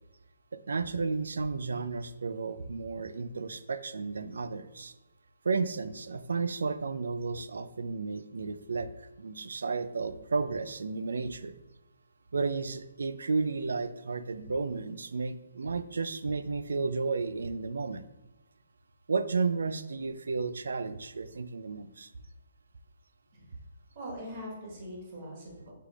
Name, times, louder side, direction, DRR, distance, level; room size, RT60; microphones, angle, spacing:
voice 1, 0.7-4.9 5.4-11.6 12.3-18.0 19.1-22.1, right 4 dB, 85° right, 12 dB, 0.3 m, -33 dB
voice 2, 23.9-25.7, equal, 40° right, -2 dB, 1.4 m, -42 dB
6.5 x 3.3 x 2.4 m, 1.1 s
hypercardioid pair, 155°, 0 cm